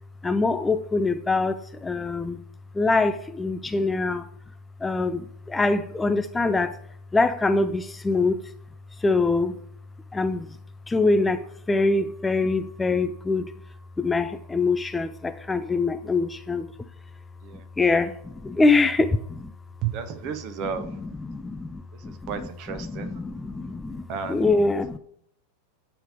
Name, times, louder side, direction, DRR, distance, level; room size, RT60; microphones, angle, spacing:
voice 1, 0.2-2.4 2.7-4.3 4.8-6.8 7.1-8.5 8.9-9.6 10.1-10.6 10.9-16.7 17.8-19.5 20.6-25.0, left 3 dB, 10° left, 10 dB, 0.3 m, -24 dB
voice 2, 19.9-21.0 22.0-23.1 24.1-24.5, right 5 dB, 40° right, 10 dB, 0.8 m, -34 dB
8.8 x 3.4 x 5.0 m, 0.67 s
figure-of-eight pair, 90°, 0 cm